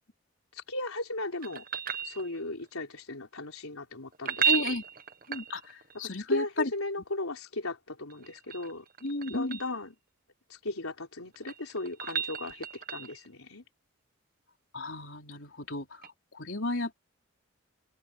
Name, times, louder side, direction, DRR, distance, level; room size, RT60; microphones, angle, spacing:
voice 1, 0.5-1.6 2.0-4.8 6.3-8.8 9.2-9.9 10.5-13.6, left 2 dB, 90° left, 4.2 m, -36 dB
sound 1, 1.4-2.7 4.1-6.0 8.1-9.8 11.2-13.3 16.0-16.1, right 8 dB, 40° right, 1.0 m, -33 dB
voice 2, 4.4-4.8 5.3-6.7 9.0-9.6 14.7-16.9, left 2 dB, 65° left, 3.5 m, -34 dB
open air
head